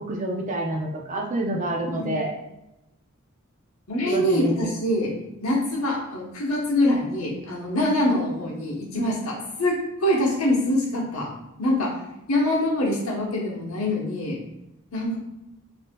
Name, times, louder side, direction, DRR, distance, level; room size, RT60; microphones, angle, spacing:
voice 1, 0.0-2.3 4.0-4.7, right 1 dB, 35° right, 0 dB, 0.5 m, -28 dB
voice 2, 1.8-2.2 3.9-5.1 5.4-9.8 10.0-11.3 11.6-11.9 12.3-14.4 14.9-15.2, left 1 dB, 85° left, -2 dB, 1.0 m, -24 dB
5.1 x 2.7 x 2.2 m, 0.90 s
head